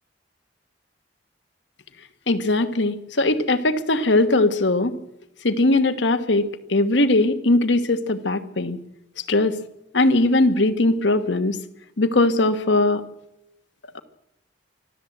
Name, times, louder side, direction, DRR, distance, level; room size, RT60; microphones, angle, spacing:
voice 1, 2.3-4.9 5.4-8.8 9.3-9.5 9.9-11.6 12.0-13.0 13.9-14.0, left 2 dB, 70° left, 9 dB, 1.4 m, -20 dB
24.5 x 14.0 x 7.9 m, 0.88 s
head